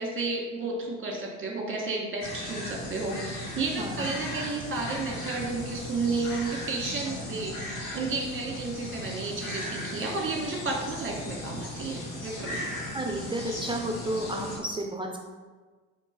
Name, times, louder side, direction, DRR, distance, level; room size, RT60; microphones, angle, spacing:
voice 1, 0.0-12.7, right 3 dB, 30° right, -1 dB, 1.4 m, -32 dB
sound 1, 2.2-14.6, left 1 dB, 55° left, 1.3 m, -37 dB
voice 2, 3.8-4.1 12.9-15.2, right 1 dB, 15° right, 1 dB, 0.5 m, -32 dB
4.4 x 2.8 x 4.3 m, 1.4 s
supercardioid pair, 80°, 38 cm